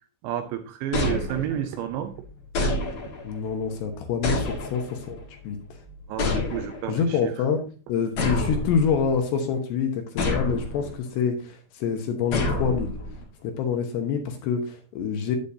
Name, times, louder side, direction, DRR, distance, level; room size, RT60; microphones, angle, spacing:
voice 1, 0.2-2.2 6.1-7.3, right 11 dB, 80° right, 2.7 m, -30 dB
sound 1, 0.9-1.8 2.5-3.4 4.2-5.1 6.2-7.0 8.2-9.2 10.2-10.9 12.3-13.2, left 2 dB, 55° left, 2.0 m, -28 dB
sound 2, 1.6-7.1, left 2 dB, 90° left, 3.4 m, -49 dB
voice 2, 3.2-5.6 6.9-7.6 7.9-12.9 13.4-15.4, left 6 dB, 70° left, 2.9 m, -26 dB
8.9 x 8.6 x 2.7 m
omnidirectional pair, 5.5 m